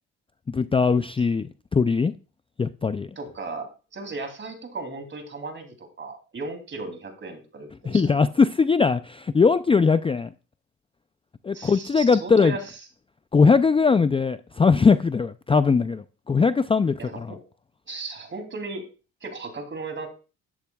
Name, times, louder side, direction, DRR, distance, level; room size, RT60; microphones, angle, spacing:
voice 1, 0.5-2.1 2.6-3.1 7.8-10.3 11.4-12.6 13.3-17.4, left 5 dB, 20° left, 12 dB, 0.4 m, -20 dB
voice 2, 3.2-8.1 11.5-12.6 17.1-17.4 17.9-18.8 19.2-20.1, right 3 dB, 40° right, 6 dB, 2.9 m, -36 dB
12.0 x 10.5 x 2.3 m, 0.33 s
cardioid pair, 90°, 30 cm